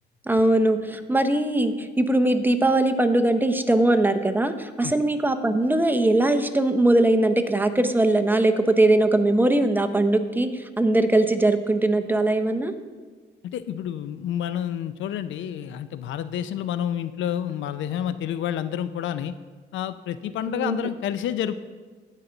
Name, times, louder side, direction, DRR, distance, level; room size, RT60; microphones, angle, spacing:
voice 1, 0.3-10.5 10.8-12.7 20.5-20.8, right 1 dB, 10° right, 8 dB, 0.7 m, -21 dB
voice 2, 13.5-19.3 19.7-21.5, left 10 dB, 75° left, 13 dB, 0.5 m, -29 dB
15.5 x 5.7 x 3.9 m, 1.4 s
cardioid pair, 90°, 20 cm